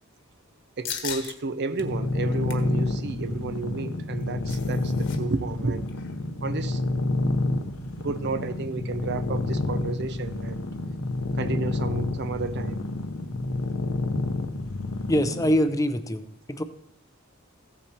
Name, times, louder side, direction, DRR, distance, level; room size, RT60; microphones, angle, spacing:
sound 1, 0.8-1.3 1.8-1.9 2.3-2.7 4.0-5.2 5.4-5.6 5.9-6.2, left 8 dB, 60° left, 1.4 m, -37 dB
voice 1, 0.8-5.9 6.4-6.8 8.0-10.7 11.4-12.8, right 3 dB, 55° right, 0.6 m, -32 dB
sound 2, 1.8-15.6, left 2 dB, 80° left, 1.1 m, -29 dB
voice 2, 15.1-16.2 16.5-16.6, equal, 15° left, 0.6 m, -23 dB
15.5 x 7.4 x 4.4 m
head